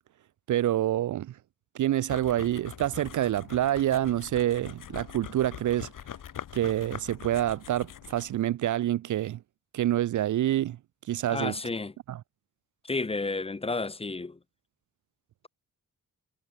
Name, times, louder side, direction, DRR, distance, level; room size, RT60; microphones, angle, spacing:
voice 1, 0.5-1.4 1.7-5.9 6.5-9.4 9.7-10.8 11.1-11.5 12.1-12.2, right 12 dB, 60° right, 0.6 m, -27 dB
sound 1, 2.1-8.4, left 10 dB, 65° left, 4.3 m, -43 dB
voice 2, 11.3-11.9 12.8-14.4, left 3 dB, 15° left, 1.8 m, -31 dB
wide cardioid pair, 175°, 34 cm